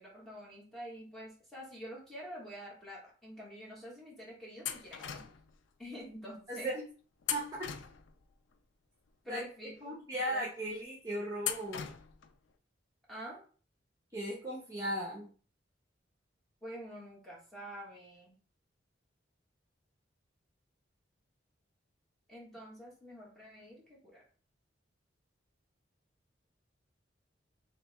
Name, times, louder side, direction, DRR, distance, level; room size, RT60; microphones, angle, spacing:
voice 1, 0.0-5.2 5.8-6.7 9.2-10.0 10.3-10.4 13.1-13.4 16.6-18.4 22.3-24.2, equal, ahead, -5 dB, 1.3 m, -47 dB
sound 1, 4.7-5.5 7.2-8.3 11.4-12.3, left 9 dB, 90° left, 0.4 m, -39 dB
voice 2, 6.5-6.8 7.3-7.7 9.3-9.4 9.8-11.9 14.1-15.3, right 1 dB, 20° right, -6 dB, 0.9 m, -37 dB
3.3 x 3.1 x 3.4 m, 0.39 s
head